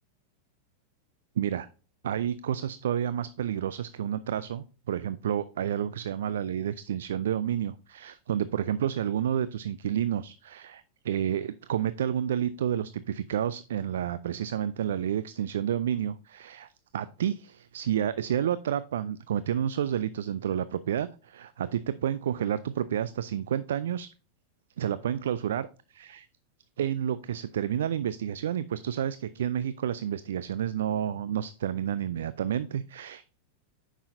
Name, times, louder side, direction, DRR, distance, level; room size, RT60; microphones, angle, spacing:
voice 1, 1.4-1.7 2.0-24.1 24.8-26.3 26.8-33.4, right 9 dB, 60° right, 16 dB, 0.3 m, -30 dB
9.3 x 6.1 x 2.6 m, 0.35 s
figure-of-eight pair, 90°, 0 cm